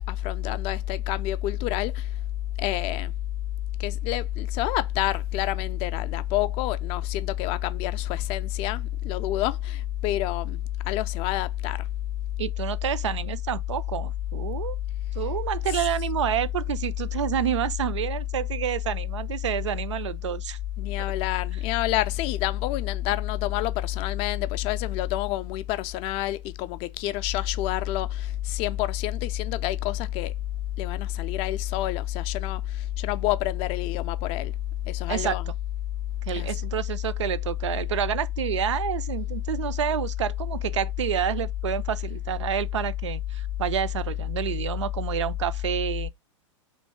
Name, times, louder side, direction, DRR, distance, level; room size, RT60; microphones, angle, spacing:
voice 1, 0.1-2.1 2.6-3.1 3.8-11.9 20.8-30.3 30.8-34.5 34.9-35.4 36.3-36.5, left 14 dB, 35° left, 0.4 m, -28 dB
voice 2, 12.4-14.8 15.2-20.6 35.1-35.4 36.3-46.1, right 10 dB, 70° right, 0.4 m, -29 dB
3.2 x 2.7 x 4.4 m
figure-of-eight pair, 95°, 16 cm